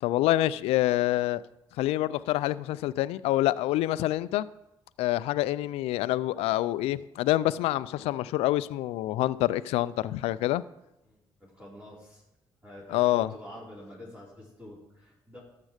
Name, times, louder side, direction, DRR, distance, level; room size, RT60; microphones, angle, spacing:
voice 1, 0.0-1.4 1.8-4.5 5.0-10.6 12.9-13.3, left 15 dB, 75° left, 0.4 m, -26 dB
voice 2, 11.0-12.2 12.6-15.4, left 1 dB, 15° right, 5.0 m, -47 dB
13.0 x 7.4 x 5.0 m
hypercardioid pair, 50°, 10 cm